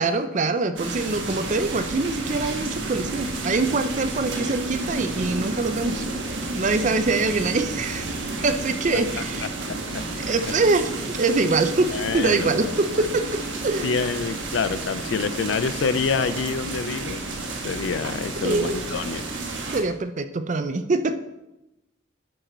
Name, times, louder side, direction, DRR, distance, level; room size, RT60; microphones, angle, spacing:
voice 1, 0.0-6.0 6.5-8.1 8.4-9.5 10.2-13.9 18.4-18.8 19.7-21.2, right 3 dB, 40° right, 9 dB, 0.5 m, -24 dB
sound 1, 0.8-19.8, right 2 dB, 70° right, 1.3 m, -31 dB
voice 2, 9.7-10.0 10.4-10.5 11.9-12.7 13.8-17.2 17.6-19.2, left 5 dB, 70° left, 13 dB, 0.4 m, -27 dB
11.0 x 4.6 x 3.9 m, 0.95 s
head